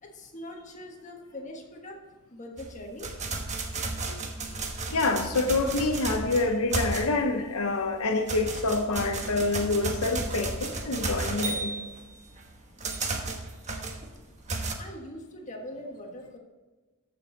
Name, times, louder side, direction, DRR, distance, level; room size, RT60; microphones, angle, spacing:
voice 1, 0.0-3.1 14.8-16.4, left 1 dB, 35° left, 2 dB, 1.5 m, -42 dB
sound 1, 2.6-7.4 7.8-14.7, right 3 dB, 35° right, 1.1 m, -33 dB
voice 2, 4.9-11.9, left 3 dB, 85° left, 4 dB, 0.9 m, -27 dB
13.5 x 6.2 x 4.0 m, 1.3 s
head